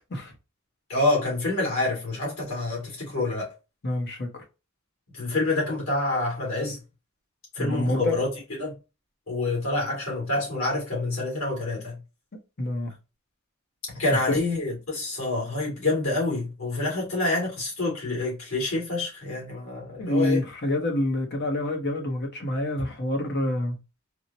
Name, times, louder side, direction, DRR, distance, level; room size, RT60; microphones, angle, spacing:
voice 1, 0.9-3.5 5.1-6.8 7.6-8.3 8.6-8.7 9.3-12.0 13.9-20.4, left 2 dB, 85° left, 2.1 m, -27 dB
voice 2, 3.8-4.4 7.6-8.2 12.6-12.9 14.1-14.2 20.0-23.8, left 1 dB, 55° left, 0.9 m, -27 dB
4.5 x 2.1 x 2.7 m
head